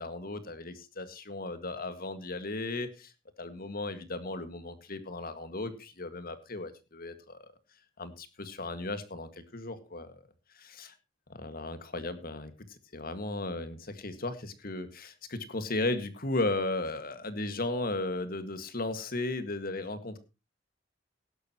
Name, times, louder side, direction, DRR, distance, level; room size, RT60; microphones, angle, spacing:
voice 1, 0.0-3.1 3.4-7.4 8.0-10.2 10.6-10.9 11.3-20.2, left 2 dB, 50° left, 10 dB, 1.8 m, -35 dB
17.0 x 12.0 x 3.0 m, 0.28 s
head